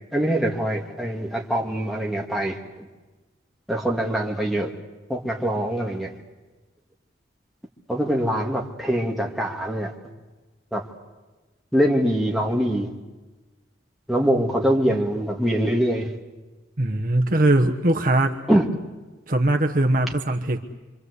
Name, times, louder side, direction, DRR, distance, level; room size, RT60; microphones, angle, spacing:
voice 1, 0.1-2.9 3.7-4.7 5.1-6.1 7.9-9.9 10.7-10.8 11.7-12.9 14.1-16.1 18.5-18.7, equal, ahead, -2 dB, 2.3 m, -23 dB
voice 2, 16.8-18.4 19.3-20.6, right 1 dB, 45° right, 4 dB, 1.2 m, -20 dB
26.0 x 25.5 x 8.3 m, 1.2 s
head